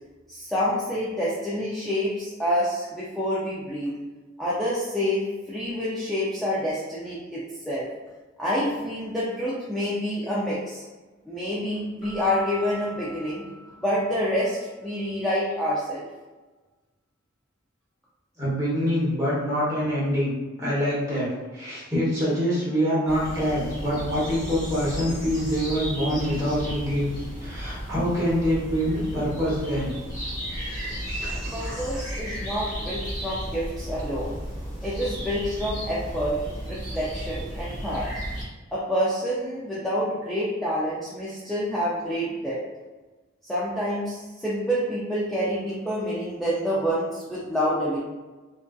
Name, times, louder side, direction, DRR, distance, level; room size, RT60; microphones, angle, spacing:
voice 1, 0.3-4.0 4.4-7.9 8.4-10.8 11.3-13.4 13.8-16.0 31.5-34.4 34.8-36.4 36.7-38.1 38.7-42.6 43.5-48.0, equal, ahead, -9 dB, 0.3 m, -27 dB
Keyboard (musical), 12.0-14.4, right 1 dB, 20° left, 1.2 m, -41 dB
voice 2, 18.4-20.3 20.6-27.1 27.4-29.9 30.6-32.0, equal, 15° right, -8 dB, 0.9 m, -26 dB
sound 1, 23.1-38.4, equal, 40° left, 1.2 m, -34 dB
2.5 x 2.4 x 2.2 m, 1.2 s
head